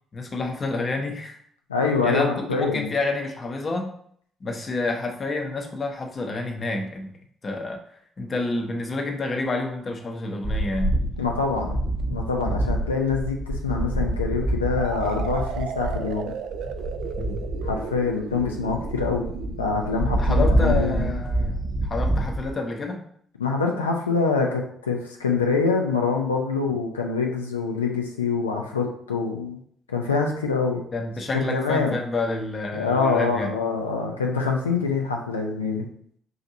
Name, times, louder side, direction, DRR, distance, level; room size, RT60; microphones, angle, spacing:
voice 1, 0.1-1.4 2.0-3.9 4.4-7.1 7.4-7.8 8.2-10.9 12.4-12.6 17.2-17.4 19.7-23.0 30.9-33.5, left 3 dB, 40° left, 3 dB, 0.8 m, -29 dB
voice 2, 1.7-2.9 11.2-11.8 12.1-16.3 17.6-19.3 19.6-21.1 23.4-29.6 29.9-30.8 31.3-32.0 32.7-35.9, left 4 dB, 85° left, 1 dB, 0.5 m, -25 dB
sound 1, 10.4-22.5, right 1 dB, 5° right, 0.7 m, -27 dB
sound 2, 14.8-22.4, right 7 dB, 65° right, 0.3 m, -36 dB
5.7 x 2.6 x 2.7 m, 0.63 s
figure-of-eight pair, 45°, 0 cm